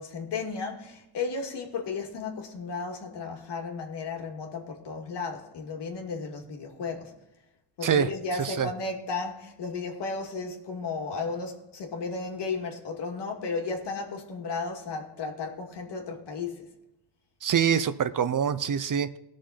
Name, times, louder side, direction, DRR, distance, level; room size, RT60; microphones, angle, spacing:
voice 1, 0.0-7.1 7.8-16.7, left 4 dB, 75° left, 2.4 m, -34 dB
voice 2, 8.4-8.7 17.4-19.2, right 8 dB, 50° right, 0.8 m, -25 dB
18.5 x 6.4 x 4.2 m
cardioid pair, 90°, 42 cm